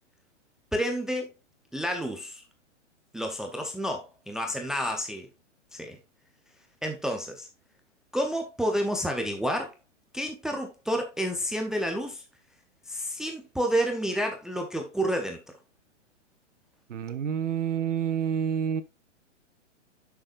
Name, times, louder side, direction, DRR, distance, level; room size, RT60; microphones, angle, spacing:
voice 1, 0.7-1.3 1.7-2.4 3.1-5.3 5.7-6.0 6.8-7.5 8.1-9.7 10.1-12.2 12.9-15.4, equal, ahead, 0.6 m, -30 dB
voice 2, 16.9-18.8, right 8 dB, 80° right, 1.5 m, -28 dB
8.6 x 6.7 x 2.4 m
hypercardioid pair, 145°, 37 cm